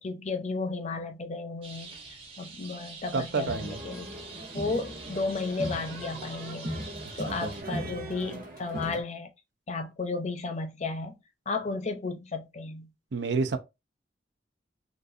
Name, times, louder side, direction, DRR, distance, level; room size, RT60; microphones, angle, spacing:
voice 1, 0.0-2.0 2.4-4.1 4.5-6.7 7.2-9.3 9.7-11.1 11.5-12.9, left 3 dB, 40° left, 0.6 m, -33 dB
sound 1, 1.6-7.6, right 4 dB, 35° right, 0.9 m, -46 dB
voice 2, 3.1-3.8 7.3-7.6 13.1-13.6, right 4 dB, 80° right, 0.5 m, -29 dB
sound 2, 3.4-9.0, right 1 dB, 55° right, 1.2 m, -38 dB
3.9 x 2.4 x 2.5 m
head